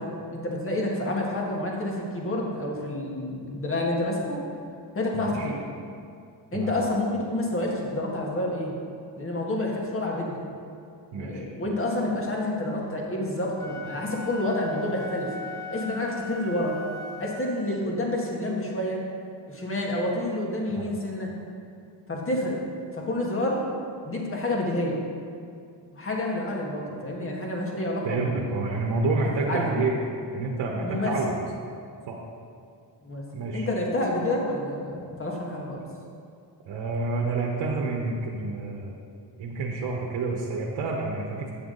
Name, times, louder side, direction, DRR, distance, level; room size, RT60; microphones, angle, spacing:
voice 1, 0.0-4.4 4.9-5.6 6.5-8.7 9.1-10.4 11.1-15.4 15.7-16.8 17.2-19.0 19.5-21.3 22.1-22.6 22.9-23.6 24.0-25.0 25.9-28.5 29.0-29.9 30.8-31.1 33.0-33.2 33.5-35.8, left 1 dB, 30° left, -2 dB, 1.7 m, -29 dB
voice 2, 5.1-5.5 6.5-6.7 11.1-11.4 20.7-20.9 28.0-30.0 30.3-31.4 32.1-32.2 33.3-33.7 36.7-39.0 39.4-41.5, right 3 dB, 70° right, -2 dB, 1.1 m, -28 dB
Wind instrument woodwind instrument, 13.6-17.9, left 3 dB, 5° left, 0.9 m, -40 dB
8.8 x 7.1 x 3.9 m, 2.4 s
cardioid pair, 95°, 45 cm